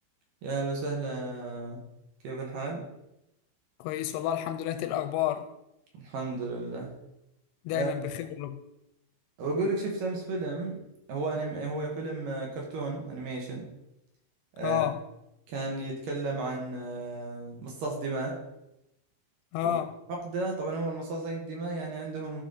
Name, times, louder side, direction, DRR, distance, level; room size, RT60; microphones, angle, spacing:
voice 1, 0.4-1.8 2.2-2.8 5.9-6.9 7.7-7.9 9.4-10.8 11.1-13.6 14.6-14.8 15.5-18.4 19.6-19.7 20.2-22.4, right 3 dB, 60° right, 2.7 m, -33 dB
voice 2, 3.8-5.5 7.7-8.6 14.6-15.0 19.5-19.9, left 11 dB, 85° left, 2.5 m, -30 dB
13.0 x 5.1 x 3.9 m
omnidirectional pair, 4.9 m